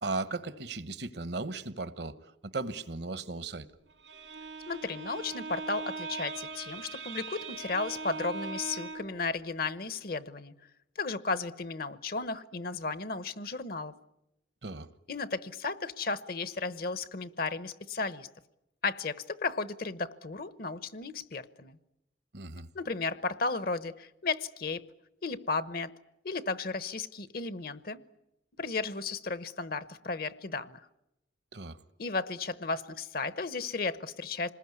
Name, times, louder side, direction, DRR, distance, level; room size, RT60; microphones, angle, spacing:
voice 1, 0.0-3.7 14.6-14.9 22.3-22.7 31.5-31.8, right 3 dB, 60° right, 1.1 m, -36 dB
Bowed string instrument, 3.9-9.2, right 3 dB, 75° right, 2.0 m, -40 dB
voice 2, 4.7-10.5 11.0-13.9 15.1-18.3 18.8-21.8 22.7-24.8 25.2-25.9 26.2-28.0 28.6-30.8 32.0-34.5, left 3 dB, 50° left, 0.9 m, -34 dB
27.0 x 20.5 x 9.7 m
head